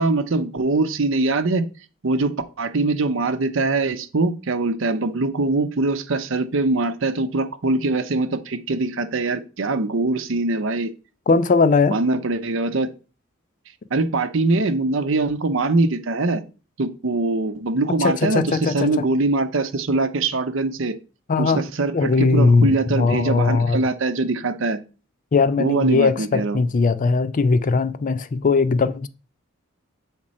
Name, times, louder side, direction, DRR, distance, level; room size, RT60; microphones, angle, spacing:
voice 1, 0.0-1.6 2.0-10.9 11.9-12.9 13.9-16.4 16.8-20.9 21.4-24.8 25.6-26.6, right 3 dB, 65° right, 0.7 m, -22 dB
voice 2, 11.3-12.0 18.0-18.9 21.3-21.6 21.9-23.8 25.3-29.1, left 4 dB, 40° left, 0.4 m, -19 dB
7.4 x 3.7 x 4.2 m
head